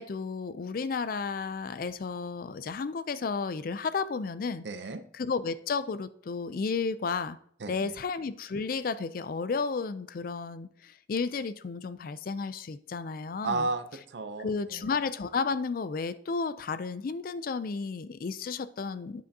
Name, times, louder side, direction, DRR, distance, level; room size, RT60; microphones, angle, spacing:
voice 1, 0.0-4.7 5.1-7.4 7.7-13.7 14.4-19.2, left 4 dB, 50° left, 14 dB, 0.4 m, -32 dB
voice 2, 4.6-5.0 7.6-7.9 13.4-14.9, right 3 dB, 75° right, 10 dB, 0.6 m, -33 dB
9.2 x 7.6 x 2.7 m, 0.64 s
head